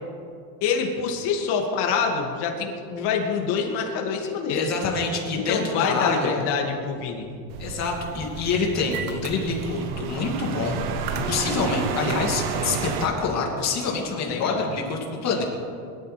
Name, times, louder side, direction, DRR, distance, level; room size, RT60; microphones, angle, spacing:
voice 1, 0.6-4.7 5.4-7.3 11.1-11.3 14.1-14.7, left 6 dB, 60° left, 1 dB, 2.4 m, -26 dB
voice 2, 4.5-6.4 7.6-10.8 11.3-15.4, left 4 dB, 35° left, 0 dB, 2.7 m, -26 dB
sound 1, 7.5-13.1, right 6 dB, 60° right, 1.4 m, -30 dB
22.5 x 12.5 x 3.5 m, 2.4 s
cardioid pair, 155°, 45 cm